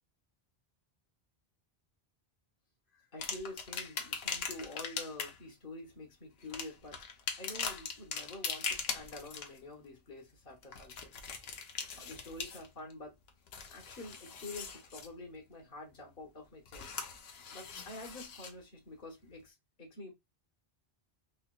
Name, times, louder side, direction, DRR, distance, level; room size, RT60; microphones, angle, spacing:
voice 1, 2.9-7.0 7.4-11.1 11.9-13.1 13.7-16.9 17.5-20.1, left 2 dB, 60° left, 1.4 m, -48 dB
sound 1, 3.2-5.4 6.4-9.6 10.6-12.9 13.3-15.1 16.7-18.5 19.3-19.4, left 6 dB, 75° left, 0.9 m, -41 dB
3.4 x 2.9 x 2.3 m
omnidirectional pair, 1.0 m